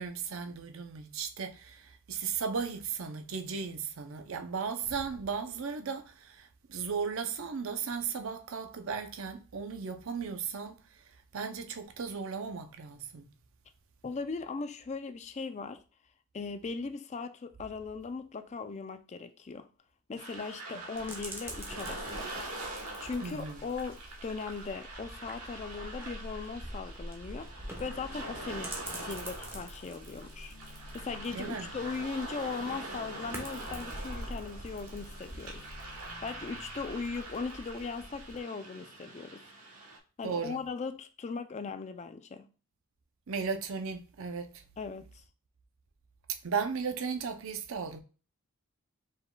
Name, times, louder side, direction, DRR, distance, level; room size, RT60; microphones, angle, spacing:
voice 1, 0.0-1.8 2.1-10.8 11.3-13.3 23.2-23.6 31.3-31.7 40.2-40.6 43.3-44.5 46.4-48.0, right 5 dB, 65° right, 0.5 m, -36 dB
voice 2, 14.0-15.8 16.3-19.7 20.1-22.3 23.0-27.5 27.8-30.5 30.9-35.7 36.2-39.4 40.2-42.5 44.8-45.2, left 4 dB, 30° left, 0.3 m, -39 dB
sound 1, 20.2-40.0, right 2 dB, 90° right, 1.2 m, -44 dB
sound 2, 20.9-38.4, equal, 10° right, 0.8 m, -46 dB
sound 3, 27.6-37.2, left 3 dB, 55° left, 1.1 m, -57 dB
5.0 x 3.8 x 2.2 m
head